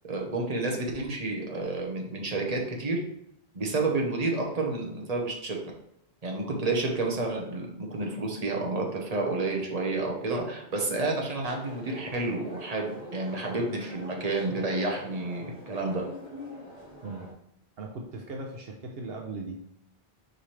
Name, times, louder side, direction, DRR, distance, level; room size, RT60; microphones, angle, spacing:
voice 1, 0.0-3.0 3.5-5.6 6.2-16.0, right 2 dB, 40° right, 0 dB, 1.3 m, -30 dB
sound 1, 11.4-17.3, equal, 60° left, 2.7 m, -44 dB
voice 2, 17.8-19.6, right 2 dB, 70° right, 1 dB, 1.0 m, -38 dB
6.6 x 5.0 x 3.2 m, 0.77 s
omnidirectional pair, 1.0 m